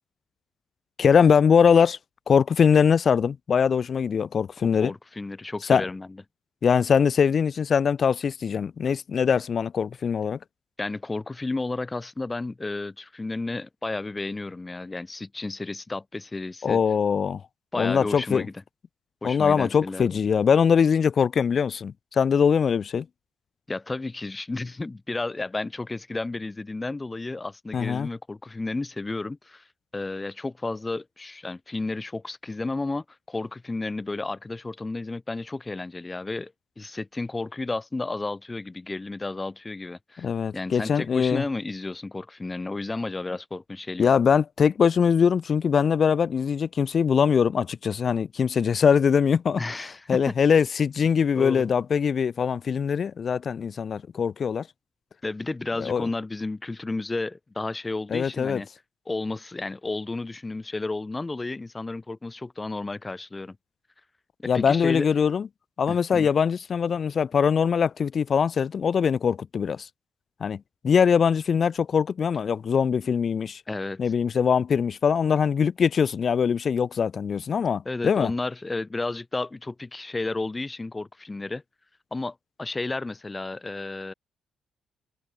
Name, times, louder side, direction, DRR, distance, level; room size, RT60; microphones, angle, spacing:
voice 1, 1.0-2.0 2.3-4.9 5.7-5.8 6.6-10.4 16.6-17.4 17.8-18.5 19.2-23.1 27.7-28.1 40.2-41.4 44.0-49.6 50.1-54.7 55.8-56.1 58.1-58.6 64.5-65.5 65.8-69.9 70.4-73.6 74.0-78.3, left 6 dB, 50° left, 2.2 m, -22 dB
voice 2, 4.6-6.1 10.8-16.8 17.7-18.5 19.2-20.2 23.7-29.7 29.9-40.3 40.5-44.1 49.5-50.3 51.3-51.7 55.2-58.7 59.1-63.6 64.4-65.1 65.9-66.3 73.7-74.0 77.8-81.6 82.1-84.1, left 3 dB, 20° left, 6.6 m, -32 dB
cardioid pair, 90°, 0 cm